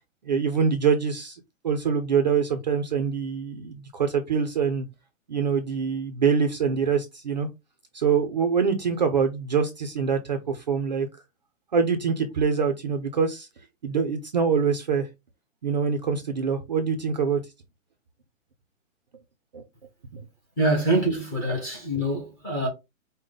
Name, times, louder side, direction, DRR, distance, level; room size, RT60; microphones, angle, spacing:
voice 1, 0.2-4.9 5.3-7.5 7.9-11.1 11.7-13.5 13.8-15.1 15.6-17.4 19.5-19.6 20.1-20.2, right 6 dB, 35° right, 0.4 m, -24 dB
voice 2, 20.6-22.7, right 1 dB, 10° left, 0.6 m, -25 dB
5.1 x 2.1 x 3.7 m
hypercardioid pair, 165°, 40 cm